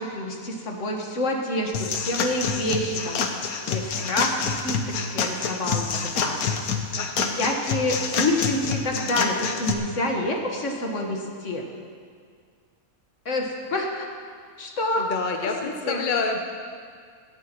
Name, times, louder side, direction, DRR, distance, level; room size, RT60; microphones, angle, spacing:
voice 1, 0.0-3.3 3.7-6.6 7.4-11.6 13.3-14.1 14.6-15.1 15.4-16.0, left 1 dB, 60° left, 1 dB, 1.8 m, -28 dB
sound 1, 1.7-9.7, left 5 dB, 85° left, 1.4 m, -27 dB
voice 2, 7.0-7.4 15.0-16.4, left 4 dB, 40° left, 3 dB, 0.8 m, -28 dB
17.0 x 15.0 x 3.1 m, 2.1 s
omnidirectional pair, 1.5 m